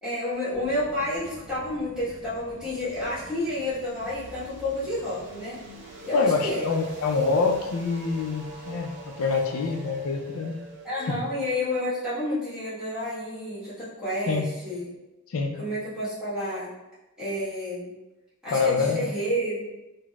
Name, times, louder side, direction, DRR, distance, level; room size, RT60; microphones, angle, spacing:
voice 1, 0.0-5.6 6.0-6.6 10.8-14.9 15.6-16.7 17.2-17.9 18.4-19.7, left 1 dB, 5° right, -12 dB, 1.1 m, -30 dB
sound 1, 0.5-13.3, right 2 dB, 55° right, 0.5 m, -45 dB
voice 2, 6.1-10.5 11.1-11.2 14.3-14.5 15.3-15.7 18.5-19.1, left 4 dB, 85° left, 4 dB, 0.4 m, -26 dB
3.9 x 2.0 x 2.2 m, 1.0 s
head